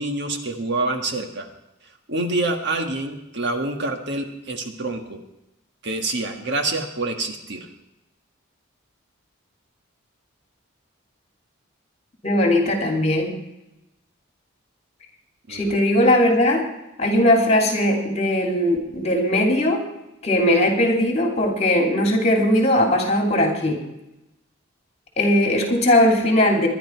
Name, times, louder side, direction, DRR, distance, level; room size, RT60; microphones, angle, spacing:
voice 1, 0.0-1.5 2.1-5.2 5.8-7.7 15.5-15.8, right 2 dB, 55° right, 5 dB, 1.6 m, -26 dB
voice 2, 12.2-13.4 15.5-16.6 17.0-19.8 20.2-23.8 25.2-26.7, left 1 dB, 30° left, 2 dB, 2.9 m, -19 dB
22.0 x 11.0 x 4.6 m, 0.93 s
head